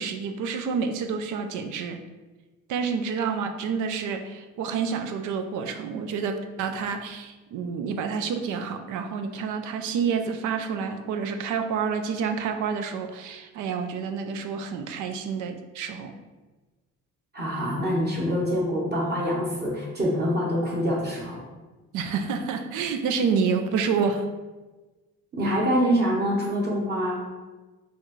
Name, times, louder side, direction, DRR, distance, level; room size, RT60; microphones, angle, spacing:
voice 1, 0.0-2.0 2.7-16.1 21.9-24.2, right 6 dB, 80° right, 7 dB, 0.5 m, -28 dB
voice 2, 17.3-21.4 25.3-27.2, equal, 35° right, -4 dB, 1.1 m, -25 dB
4.1 x 2.5 x 3.1 m, 1.2 s
cardioid pair, 90°, 30 cm